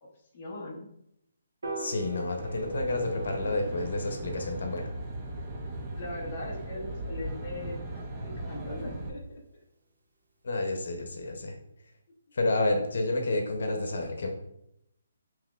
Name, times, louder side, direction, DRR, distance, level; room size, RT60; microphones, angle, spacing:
voice 1, 0.0-0.9 5.9-7.8 8.2-9.4, left 1 dB, 20° left, -5 dB, 0.7 m, -40 dB
Piano, 1.6-7.9, right 3 dB, 85° right, 1.0 m, -45 dB
voice 2, 1.8-4.9 10.4-11.6 12.3-14.3, left 2 dB, 60° left, 3 dB, 0.8 m, -30 dB
Aircraft, 2.4-9.1, right 1 dB, 15° right, 0.4 m, -38 dB
5.6 x 2.9 x 2.4 m, 0.79 s
hypercardioid pair, 175°, 0 cm